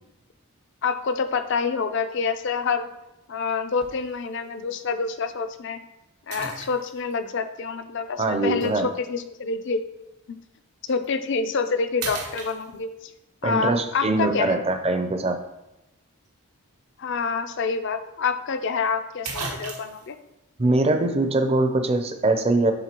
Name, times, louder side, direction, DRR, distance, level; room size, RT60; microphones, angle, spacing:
voice 1, 0.8-2.9 3.3-5.8 6.3-9.8 10.3-10.4 10.9-13.1 13.4-14.7 17.0-20.2, left 5 dB, 55° left, 9 dB, 0.4 m, -27 dB
sound 1, 3.8-4.1 4.8-4.9 6.3-7.1 8.6-8.7 10.9-11.1 11.5-11.7 12.0-13.1 17.2-17.3 17.6-17.7 18.8-18.9 19.2-20.1, right 4 dB, 90° right, 1.1 m, -35 dB
voice 2, 8.2-8.9 13.4-15.4 20.6-22.7, right 2 dB, 25° right, 6 dB, 0.5 m, -22 dB
9.0 x 3.6 x 3.0 m, 0.92 s
head